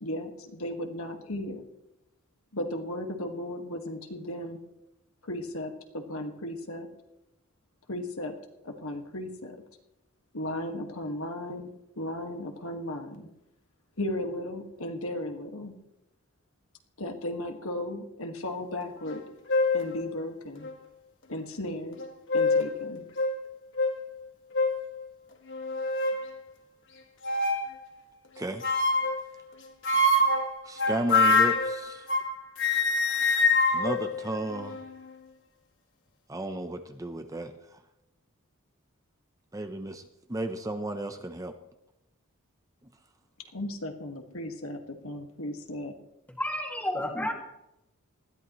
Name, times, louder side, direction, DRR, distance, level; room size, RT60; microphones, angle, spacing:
voice 1, 0.0-1.6 2.5-4.6 5.2-6.9 7.9-8.4 8.6-9.6 10.3-13.3 14.0-15.7 17.0-19.2 19.7-20.7 21.3-22.0 22.3-23.1 43.5-45.9, left 1 dB, 75° left, 4 dB, 1.8 m, -35 dB
sound 1, 19.1-19.2 19.5-19.9 20.6-20.7 22.0-22.7 23.2-23.3 23.8-24.0 24.5-24.8 25.5-26.2 27.2-27.7 28.6-29.2 29.8-32.3 32.6-34.9, left 2 dB, 60° left, 1.7 m, -25 dB
voice 2, 30.6-32.1 33.7-34.8 36.3-37.8 39.5-40.0 40.3-41.5, right 1 dB, 15° right, 7 dB, 0.7 m, -33 dB
voice 3, 46.4-47.3, left 1 dB, 10° left, 1 dB, 2.1 m, -30 dB
19.5 x 14.0 x 3.1 m, 0.87 s
head